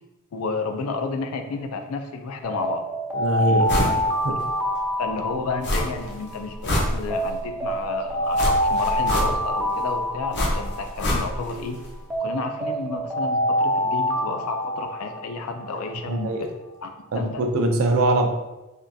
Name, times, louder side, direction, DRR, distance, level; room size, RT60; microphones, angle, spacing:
voice 1, 0.3-2.8 3.4-3.9 5.0-11.8 12.2-16.5 16.8-16.9 17.2-17.5, left 4 dB, 75° left, 6 dB, 0.4 m, -31 dB
Alarm, 2.4-6.6 7.1-11.6 12.1-15.9, equal, 5° right, 0.4 m, -26 dB
voice 2, 3.1-4.4 16.1-16.4 17.1-18.3, right 1 dB, 65° right, 3 dB, 0.4 m, -23 dB
sound 1, 3.7-4.0 4.4-4.5 5.6-6.1 6.5-7.4 8.3-9.6 10.3-11.6 11.8-11.9, left 1 dB, 55° left, 0.8 m, -25 dB
3.6 x 2.3 x 2.6 m, 1.0 s
head